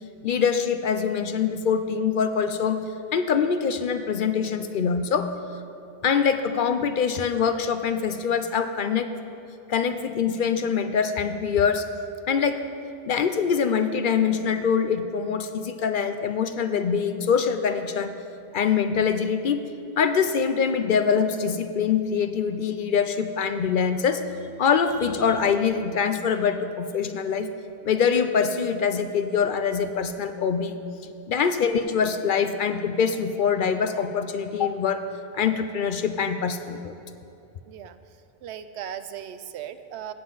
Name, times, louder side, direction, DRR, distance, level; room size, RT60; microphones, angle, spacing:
voice 1, 0.2-2.8 3.1-5.3 6.0-9.1 9.7-11.8 12.3-12.6 13.1-18.1 18.5-19.7 20.0-24.2 24.6-27.5 27.8-30.8 31.3-35.0 35.3-36.9, left 6 dB, 60° left, 9 dB, 0.6 m, -24 dB
voice 2, 37.7-38.0 38.4-40.1, right 9 dB, 85° right, 11 dB, 0.8 m, -37 dB
16.5 x 7.5 x 3.9 m, 2.6 s
omnidirectional pair, 1.1 m